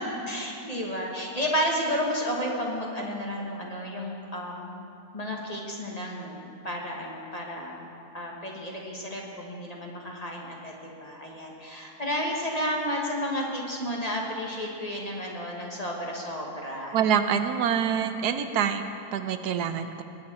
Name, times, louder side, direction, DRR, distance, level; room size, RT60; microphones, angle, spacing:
voice 1, 0.3-4.8 5.1-10.7 11.0-17.0, equal, 25° left, -2 dB, 1.5 m, -32 dB
voice 2, 16.9-20.0, right 8 dB, 85° right, 9 dB, 1.2 m, -26 dB
20.0 x 8.8 x 4.3 m, 2.6 s
omnidirectional pair, 1.6 m